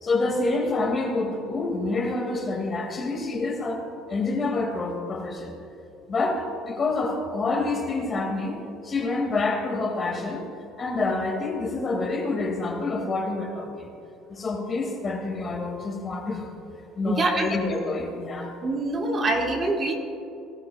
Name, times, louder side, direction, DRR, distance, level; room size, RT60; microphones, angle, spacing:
voice 1, 0.0-3.8 4.1-5.5 6.1-10.5 10.8-13.9 14.3-16.5 17.0-18.5, left 3 dB, 30° left, 2 dB, 2.1 m, -27 dB
voice 2, 17.0-17.5 18.6-19.9, right 2 dB, 30° right, 1 dB, 1.6 m, -25 dB
20.0 x 12.5 x 2.3 m, 2.8 s
cardioid pair, 125°, 0 cm